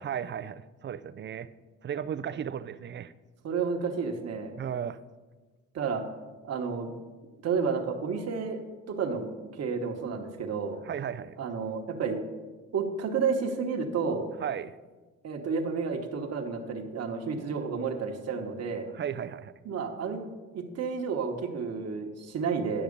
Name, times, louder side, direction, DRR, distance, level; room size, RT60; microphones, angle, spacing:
voice 1, 0.0-1.5 1.8-3.1 4.6-5.0 10.8-11.4 14.4-14.7 18.9-19.5, right 8 dB, 40° right, 14 dB, 0.5 m, -35 dB
voice 2, 3.4-4.5 5.7-6.0 6.4-6.9 7.4-10.8 11.4-12.2 12.7-14.3 15.2-18.9 19.6-20.2 20.5-22.8, right 5 dB, 55° right, 3 dB, 1.2 m, -31 dB
9.9 x 5.9 x 5.2 m, 1.3 s
cardioid pair, 90°, 30 cm